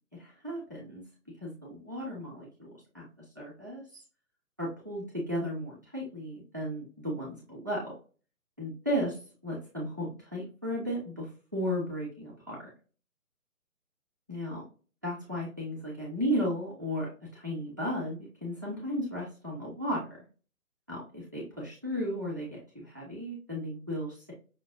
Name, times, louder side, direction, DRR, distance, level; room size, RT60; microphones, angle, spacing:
voice 1, 0.1-1.0 1.4-4.0 4.6-7.9 8.6-12.7 14.3-14.6 15.0-20.2 20.9-24.3, equal, 15° right, -4 dB, 0.6 m, -35 dB
5.6 x 2.1 x 2.5 m, 0.35 s
hypercardioid pair, 155°, 44 cm